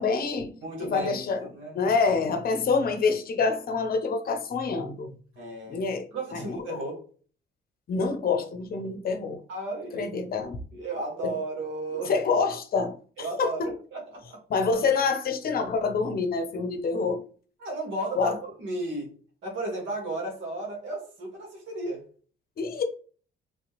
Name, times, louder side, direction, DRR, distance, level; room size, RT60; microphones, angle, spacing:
voice 1, 0.0-0.5 0.8-1.5 1.7-5.1 5.7-6.1 6.3-6.8 7.9-9.4 9.9-10.6 11.2-11.3 12.0-13.7 14.5-17.2 18.2-18.4 22.6-22.8, left 4 dB, 50° left, 0.7 m, -27 dB
voice 2, 0.6-1.2 1.5-1.9 5.3-5.8 6.1-7.0 9.5-10.1 10.7-12.1 13.2-14.4 17.6-19.1 19.4-22.0, right 2 dB, 75° right, 1.6 m, -34 dB
3.3 x 2.8 x 3.0 m
cardioid pair, 90°, 20 cm